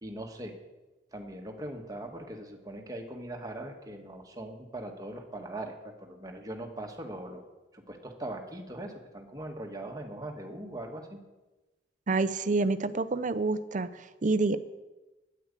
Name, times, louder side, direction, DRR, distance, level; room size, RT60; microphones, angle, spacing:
voice 1, 0.0-0.5 1.1-7.5 7.7-11.2, right 1 dB, 20° right, 2 dB, 1.5 m, -40 dB
voice 2, 12.1-14.6, right 3 dB, 45° right, 13 dB, 0.6 m, -28 dB
9.5 x 9.1 x 8.2 m, 1.1 s
head